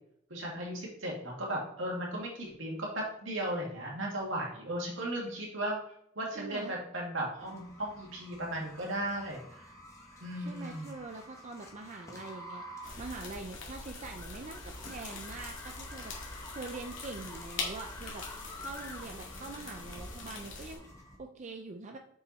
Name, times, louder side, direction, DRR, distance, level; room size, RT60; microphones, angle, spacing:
voice 1, 0.3-5.8 6.2-9.4 10.2-10.9, right 1 dB, 75° right, -2 dB, 2.2 m, -36 dB
voice 2, 6.3-6.8 10.3-16.1 16.5-18.2 18.6-20.9 21.2-22.0, right 3 dB, 40° right, 4 dB, 0.5 m, -44 dB
sound 1, 7.4-21.2, left 1 dB, 15° left, 1.3 m, -49 dB
sound 2, 12.8-20.8, left 3 dB, 90° left, 2.0 m, -43 dB
6.4 x 5.4 x 4.1 m, 0.71 s
head